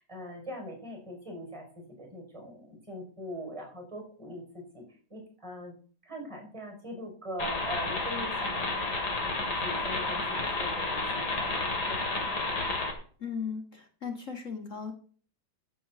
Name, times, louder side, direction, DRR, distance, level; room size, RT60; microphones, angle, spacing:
voice 1, 0.0-4.8 5.1-5.7 6.0-12.3, equal, 15° right, 2 dB, 5.3 m, -42 dB
sound 1, 7.4-12.9, left 3 dB, 60° left, 2.8 m, -31 dB
voice 2, 13.2-14.9, left 6 dB, 45° left, 4 dB, 1.8 m, -37 dB
14.0 x 6.3 x 5.9 m, 0.43 s
omnidirectional pair, 2.0 m